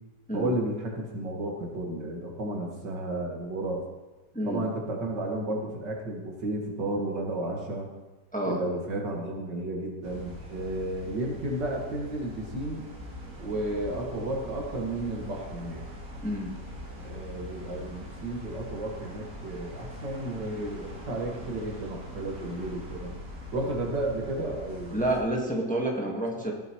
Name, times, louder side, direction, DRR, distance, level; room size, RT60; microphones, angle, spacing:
voice 1, 0.3-3.8 4.4-7.9 8.5-12.9 13.4-15.8 17.0-23.2 23.5-25.0 26.3-26.5, right 1 dB, 85° right, 0 dB, 2.4 m, -33 dB
sound 1, 10.0-25.2, equal, 55° right, 2.4 m, -42 dB
voice 2, 16.2-16.5 24.9-26.5, right 1 dB, 5° left, -1 dB, 1.2 m, -28 dB
15.0 x 7.7 x 3.0 m, 1.1 s
omnidirectional pair, 1.8 m